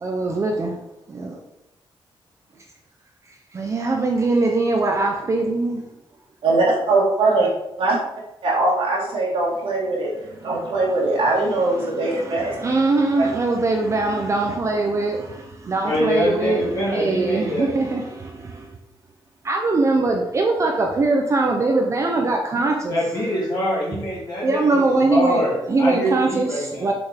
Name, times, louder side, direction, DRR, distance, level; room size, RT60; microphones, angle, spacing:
voice 1, 0.0-0.7 1.1-1.3 3.5-5.8 10.3-11.0 11.3-18.7 19.4-22.9 24.4-26.9, right 3 dB, 30° right, 1 dB, 0.7 m, -22 dB
voice 2, 6.4-7.5 7.8-8.0 8.4-10.1 10.4-12.6, right 2 dB, 70° right, -5 dB, 2.2 m, -20 dB
voice 3, 15.8-17.7 22.9-26.9, equal, 35° left, -9 dB, 2.7 m, -24 dB
6.9 x 5.2 x 5.1 m, 0.90 s
wide cardioid pair, 180°, 10 cm